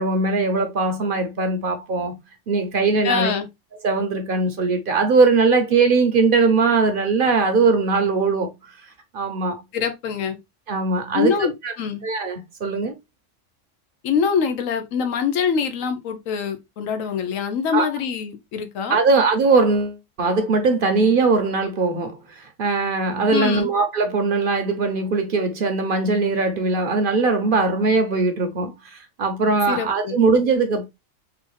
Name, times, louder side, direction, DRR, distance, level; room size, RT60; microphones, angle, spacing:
voice 1, 0.0-2.1 2.5-3.3 3.8-8.5 9.1-9.6 10.7-11.7 12.0-12.9 17.7-17.9 18.9-30.8, right 4 dB, 50° right, 0.7 m, -20 dB
voice 2, 3.0-3.5 9.7-10.4 11.1-12.0 14.0-19.0 23.3-23.7 29.7-30.2, left 6 dB, 85° left, 1.1 m, -24 dB
3.8 x 2.5 x 3.1 m
omnidirectional pair, 1.4 m